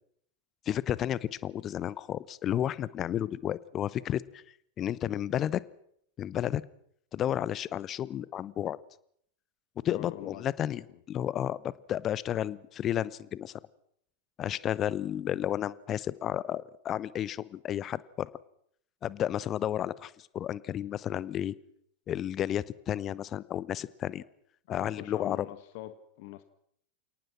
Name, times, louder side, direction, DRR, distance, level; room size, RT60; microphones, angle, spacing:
voice 1, 0.7-4.4 4.8-5.6 6.2-6.6 7.1-8.8 9.8-10.8 11.1-13.5 14.4-18.3 19.0-21.5 22.1-24.2 24.7-25.5, left 11 dB, 30° left, 20 dB, 0.9 m, -32 dB
voice 2, 9.8-10.5 24.7-26.4, left 15 dB, 50° left, 11 dB, 1.3 m, -43 dB
29.0 x 18.5 x 6.0 m, 0.68 s
figure-of-eight pair, 90°, 0 cm